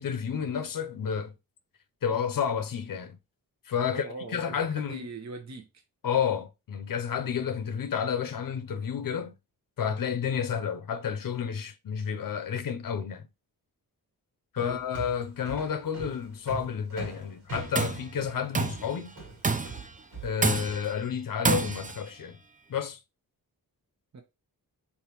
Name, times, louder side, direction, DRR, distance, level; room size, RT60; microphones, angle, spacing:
voice 1, 0.0-1.3 2.0-3.2 3.6-5.1 6.0-9.3 9.8-13.2 14.5-19.1 20.2-22.4 22.7-23.0, left 7 dB, 60° left, 0.7 m, -31 dB
voice 2, 3.8-5.8 14.6-14.8 24.1-24.2, right 3 dB, 45° right, 0.9 m, -41 dB
sound 1, 14.6-20.8, right 1 dB, 80° right, 2.3 m, -41 dB
Tools, 17.5-18.1 18.5-18.9 19.4-19.9 20.4-20.9 21.5-22.0, right 4 dB, 20° right, 0.5 m, -28 dB
4.4 x 3.4 x 2.9 m
cardioid pair, 75°, 38 cm